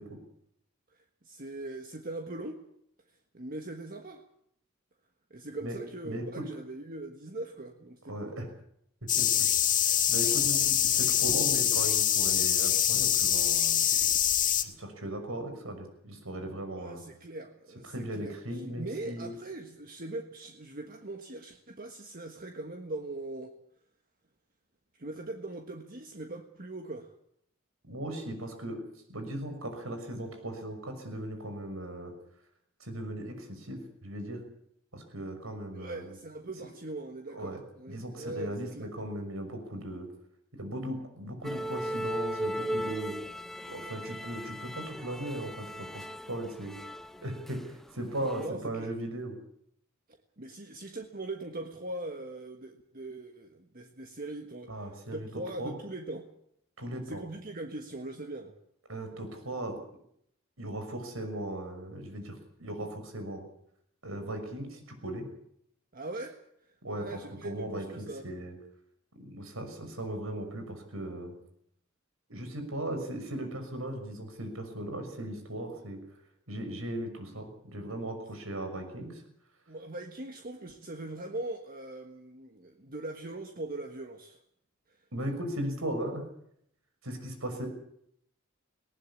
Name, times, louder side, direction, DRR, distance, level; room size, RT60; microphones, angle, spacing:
voice 1, 0.9-2.6 3.3-4.2 5.3-8.3 10.9-11.0 16.7-23.5 24.9-27.1 35.7-38.9 48.4-48.9 50.4-56.3 57.1-58.5 65.9-66.4 66.9-68.3 79.7-84.4 84.9-85.0, right 2 dB, 45° right, 5 dB, 1.5 m, -41 dB
voice 2, 6.0-6.4 8.1-8.4 9.2-9.7 10.1-13.8 14.6-17.0 17.8-19.3 27.8-28.8 29.1-32.1 32.8-34.4 34.9-36.1 37.3-37.6 37.9-40.1 40.6-43.2 43.7-46.8 47.2-49.3 54.7-55.3 55.6-55.7 56.8-57.2 58.9-59.7 60.6-63.4 64.0-65.3 66.8-68.5 69.2-71.3 72.3-76.0 76.5-79.2 85.1-86.2 87.0-87.7, right 1 dB, 90° right, 6 dB, 6.1 m, -37 dB
sound 1, 9.1-14.6, left 10 dB, 40° left, 1.6 m, -25 dB
sound 2, 41.4-47.9 48.1-48.5, equal, ahead, 0.8 m, -37 dB
19.5 x 18.5 x 8.5 m, 0.72 s
head